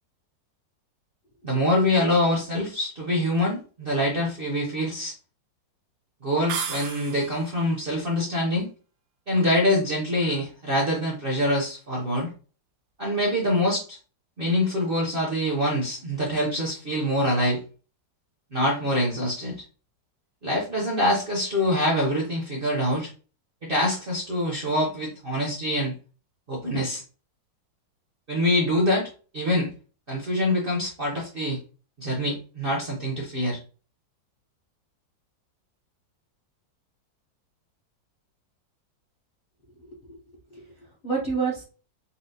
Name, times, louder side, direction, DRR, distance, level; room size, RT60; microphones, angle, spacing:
voice 1, 1.4-5.1 6.2-8.7 9.3-12.3 13.0-14.0 14.4-17.6 18.5-19.6 20.4-23.1 23.6-25.9 26.5-27.0 28.3-29.7 30.1-31.6 32.0-33.6, left 1 dB, 50° right, -3 dB, 0.6 m, -25 dB
sound 1, 6.5-7.6, right 7 dB, 75° right, 1.0 m, -33 dB
voice 2, 39.8-40.2 40.5-41.6, right 5 dB, 50° left, -5 dB, 0.6 m, -30 dB
4.1 x 2.0 x 2.7 m, 0.36 s
omnidirectional pair, 2.0 m